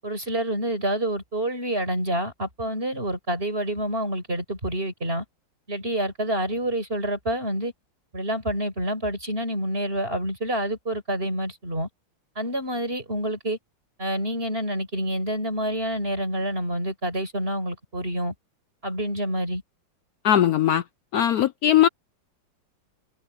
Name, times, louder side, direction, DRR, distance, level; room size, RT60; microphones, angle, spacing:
voice 1, 0.0-5.2 5.7-7.7 8.1-11.9 12.4-13.6 14.0-18.3 18.8-19.6, right 1 dB, 25° right, 7.6 m, -28 dB
voice 2, 20.2-20.8 21.1-21.9, left 11 dB, 80° left, 0.8 m, -19 dB
omnidirectional pair, 2.2 m